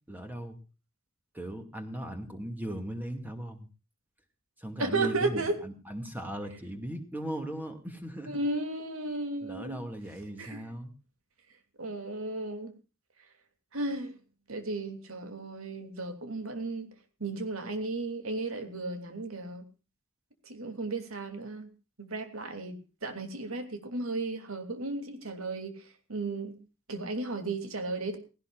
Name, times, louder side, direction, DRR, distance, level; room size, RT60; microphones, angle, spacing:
voice 1, 0.1-0.6 1.3-3.7 4.6-8.4 9.4-10.9, equal, 10° right, 6 dB, 2.3 m, -38 dB
voice 2, 4.8-5.5 8.3-9.8 10.4-10.6 11.8-12.7 13.7-14.1 14.5-16.9 17.2-19.6 20.5-21.6 22.0-25.8 26.1-26.5 26.9-28.2, right 3 dB, 90° right, 7 dB, 3.0 m, -34 dB
18.5 x 17.0 x 2.5 m, 0.33 s
head